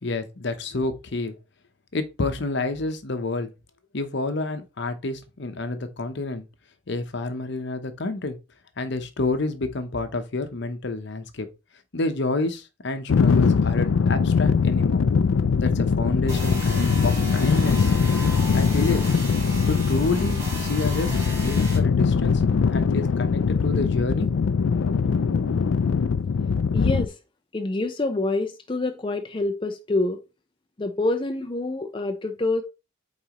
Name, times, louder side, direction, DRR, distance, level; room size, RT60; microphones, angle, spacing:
voice 1, 0.0-1.3 1.9-3.5 3.9-6.4 6.9-8.4 8.8-11.5 11.9-15.0 15.6-17.9 18.5-19.1 19.7-22.4 22.7-24.3, left 2 dB, 60° left, 0.9 m, -29 dB
sound 1, 13.1-27.1, left 5 dB, 80° left, 0.4 m, -22 dB
sound 2, 16.3-21.8, right 1 dB, 15° right, 4.4 m, -35 dB
voice 2, 26.7-27.2 27.5-30.2 30.8-32.6, left 2 dB, 25° left, 0.6 m, -26 dB
8.7 x 4.1 x 3.0 m
head